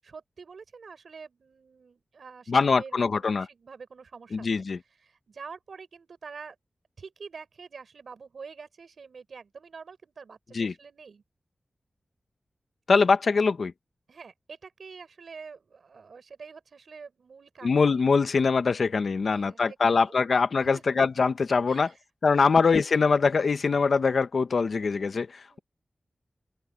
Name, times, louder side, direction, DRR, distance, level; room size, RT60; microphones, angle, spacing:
voice 1, 0.0-6.6 7.0-11.2 14.1-18.1 19.3-20.1 20.6-20.8 21.7-22.0 25.5-25.6, right 5 dB, 85° right, 6.0 m, -46 dB
voice 2, 2.5-3.4 4.3-4.8 10.5-10.7 12.9-13.7 17.6-21.9 22.2-25.6, left 4 dB, 75° left, 1.2 m, -23 dB
wide cardioid pair, 85°, 0 cm